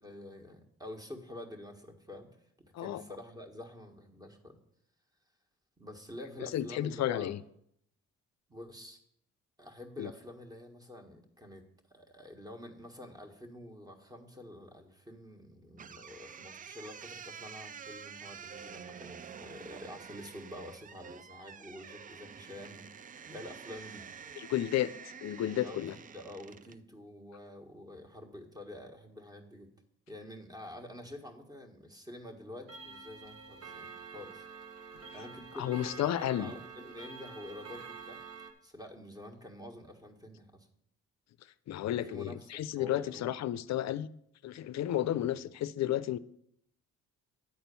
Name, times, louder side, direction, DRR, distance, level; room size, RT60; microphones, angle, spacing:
voice 1, 0.0-2.3 2.6-4.6 5.8-7.3 8.5-9.0 9.6-11.6 11.9-22.8 23.2-24.1 25.5-29.7 30.1-34.5 35.1-38.2 38.6-40.7 41.9-43.3 45.0-45.3, left 1 dB, 10° right, 1.5 m, -48 dB
voice 2, 6.4-7.4 10.0-10.1 24.4-24.9 25.2-26.0 35.6-36.5 41.7-44.1 44.4-46.2, left 12 dB, 60° left, 0.5 m, -32 dB
sound 1, 15.8-26.8, right 7 dB, 30° right, 0.3 m, -48 dB
Clock, 32.7-38.5, right 5 dB, 50° right, 1.2 m, -48 dB
9.7 x 4.3 x 6.9 m
cardioid pair, 90°, 30 cm